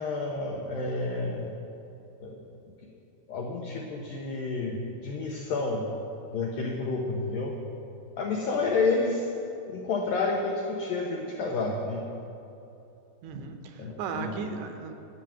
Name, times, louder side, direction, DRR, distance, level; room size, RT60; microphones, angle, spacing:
voice 1, 0.0-1.5 2.2-2.4 3.3-5.9 6.3-7.6 8.2-9.3 9.7-12.1 13.8-14.5, left 3 dB, 90° left, 0 dB, 2.0 m, -30 dB
voice 2, 13.2-14.9, right 5 dB, 80° right, 6 dB, 2.9 m, -36 dB
11.0 x 6.0 x 8.7 m, 2.8 s
omnidirectional pair, 5.1 m